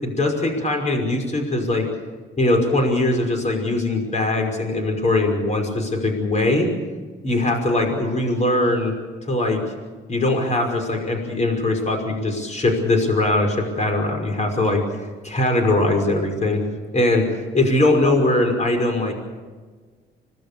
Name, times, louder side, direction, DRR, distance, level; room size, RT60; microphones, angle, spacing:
voice 1, 0.0-1.9 2.4-6.7 7.2-8.9 9.3-9.6 10.1-14.8 15.2-16.6 16.9-17.3 17.5-19.1, left 2 dB, 35° left, 4 dB, 5.6 m, -21 dB
26.5 x 18.5 x 7.0 m, 1.4 s
cardioid pair, 90°, 20 cm